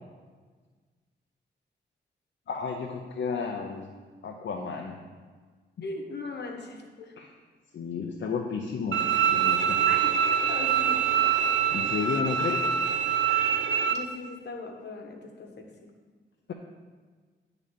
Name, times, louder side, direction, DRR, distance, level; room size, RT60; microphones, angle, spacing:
voice 1, 2.5-3.9 4.2-5.0 7.2-7.3 7.7-9.8 11.2-12.7 16.5-16.6, left 5 dB, 80° left, 2 dB, 0.7 m, -33 dB
voice 2, 5.8-7.1 9.9-11.0 13.4-13.6 13.9-15.9, left 3 dB, 65° left, 2 dB, 1.4 m, -39 dB
Bowed string instrument, 8.9-13.9, right 8 dB, 85° right, 0.5 m, -24 dB
9.7 x 3.9 x 7.3 m, 1.5 s
cardioid pair, 75°, 19 cm